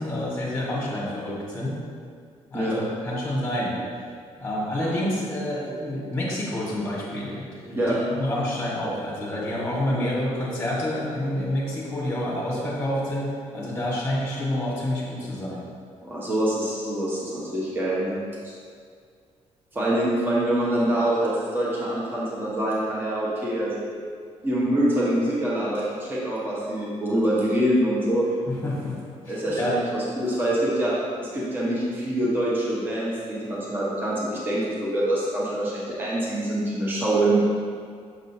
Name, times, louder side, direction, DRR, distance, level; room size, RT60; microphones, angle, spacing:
voice 1, 0.0-1.8 2.5-3.8 4.4-15.6 28.5-28.9 29.2-29.8, left 1 dB, 10° left, -6 dB, 1.3 m, -28 dB
voice 2, 16.0-18.2 19.7-23.9 24.4-28.2 29.3-30.9 31.3-37.4, right 1 dB, 20° right, -6 dB, 1.0 m, -25 dB
6.3 x 6.2 x 2.8 m, 2.1 s
cardioid pair, 170°, 12 cm